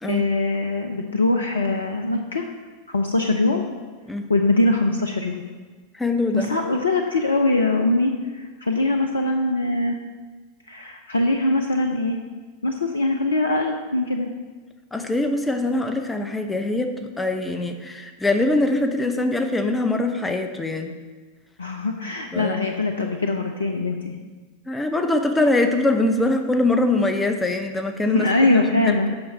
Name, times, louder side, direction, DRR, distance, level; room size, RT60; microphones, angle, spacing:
voice 1, 0.0-2.5 2.9-3.6 4.3-5.4 6.3-10.0 10.7-12.2 12.6-14.3 21.6-24.1 28.1-29.1, left 2 dB, 75° left, 4 dB, 0.6 m, -22 dB
voice 2, 5.9-6.5 14.9-20.9 22.3-22.6 24.7-28.3 28.8-29.0, left 2 dB, 10° left, 5 dB, 0.7 m, -23 dB
8.8 x 6.1 x 5.4 m, 1.4 s
figure-of-eight pair, 90°, 0 cm